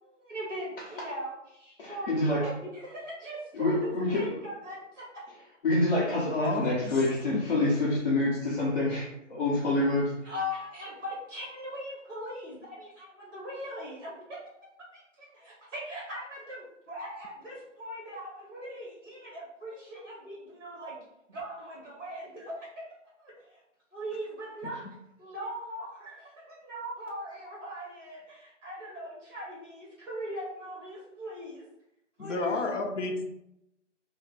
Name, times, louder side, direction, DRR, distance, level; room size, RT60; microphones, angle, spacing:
voice 1, 0.0-5.2 9.5-10.0 10.2-14.1 14.9-21.0 21.3-22.7 23.2-23.6 23.9-24.9 25.2-31.6 32.2-32.7, equal, 20° right, -5 dB, 1.3 m, -40 dB
voice 2, 1.8-2.4 3.5-4.4 5.6-10.1, left 2 dB, 45° left, -7 dB, 0.9 m, -27 dB
voice 3, 6.3-7.4 32.2-33.3, left 3 dB, 75° left, 3 dB, 0.6 m, -32 dB
3.2 x 2.2 x 4.0 m, 0.82 s
figure-of-eight pair, 165°, 37 cm